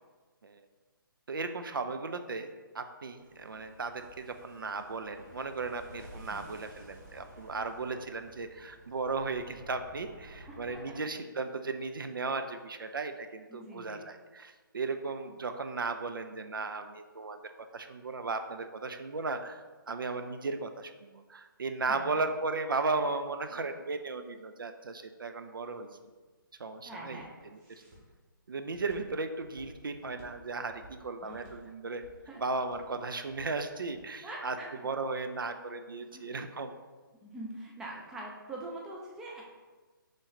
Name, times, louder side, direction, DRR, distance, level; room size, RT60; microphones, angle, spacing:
voice 1, 1.3-17.4 17.7-26.1 26.6-27.2 27.5-27.6 28.5-32.0 32.4-34.6 34.8-36.8, right 3 dB, 70° right, 7 dB, 0.4 m, -36 dB
sound 1, 3.2-10.8, right 1 dB, 45° right, 1.2 m, -53 dB
voice 2, 10.5-11.0 13.5-14.0 21.9-22.2 26.8-27.3 31.2-31.5 32.3-32.4 34.2-34.7 36.1-36.2 37.2-39.5, right 2 dB, 5° right, -3 dB, 0.4 m, -44 dB
Walk footsteps, 26.1-34.1, right 1 dB, 20° right, 1.1 m, -56 dB
3.7 x 3.2 x 4.0 m, 1.3 s
figure-of-eight pair, 140°, 12 cm